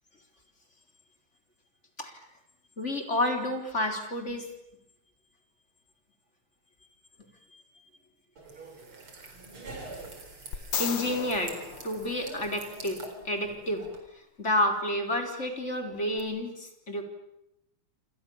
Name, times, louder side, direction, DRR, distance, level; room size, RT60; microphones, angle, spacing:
voice 1, 2.8-4.5 7.5-7.6 10.8-13.9 14.4-17.0, left 1 dB, 30° left, 4 dB, 4.0 m, -30 dB
sound 1, 8.4-14.0, right 2 dB, 80° right, 5.2 m, -45 dB
sound 2, 10.5-12.8 16.2-16.3, left 7 dB, 75° left, 2.8 m, -36 dB
28.5 x 28.0 x 7.1 m, 0.85 s
omnidirectional pair, 2.4 m